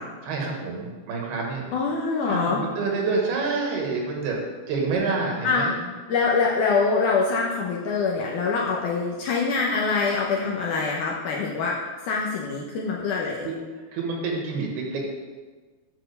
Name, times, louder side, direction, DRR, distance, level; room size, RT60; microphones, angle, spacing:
voice 1, 0.2-1.6 2.3-5.8 13.4-13.6 13.9-15.0, right 4 dB, 85° right, 0 dB, 3.6 m, -28 dB
voice 2, 1.7-2.6 5.4-5.7 6.1-11.7 12.0-13.5, left 4 dB, 75° left, -3 dB, 1.9 m, -24 dB
8.9 x 4.3 x 6.7 m, 1.4 s
omnidirectional pair, 4.5 m